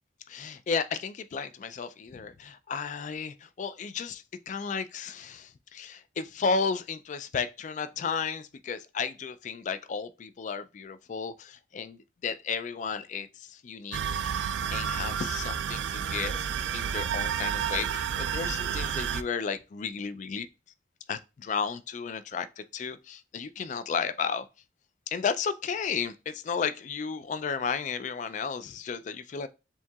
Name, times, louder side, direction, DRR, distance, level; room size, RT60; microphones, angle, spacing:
voice 1, 0.3-20.5 21.1-22.5 22.7-24.5 25.1-29.5, left 5 dB, 40° left, 0.3 m, -33 dB
sound 1, 13.9-19.2, right 8 dB, 75° right, 0.3 m, -30 dB
7.3 x 2.7 x 2.3 m
head